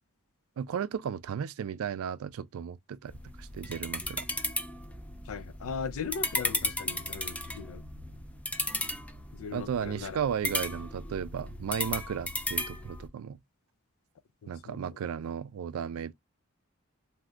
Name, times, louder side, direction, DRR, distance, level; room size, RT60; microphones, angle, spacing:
voice 1, 0.6-4.3 9.5-13.4 14.5-16.1, right 8 dB, 80° right, 0.3 m, -35 dB
sound 1, 3.0-13.1, left 1 dB, 5° left, 0.4 m, -35 dB
voice 2, 5.3-7.8 9.3-10.2 14.6-14.8, left 5 dB, 80° left, 0.4 m, -38 dB
2.6 x 2.4 x 3.3 m
head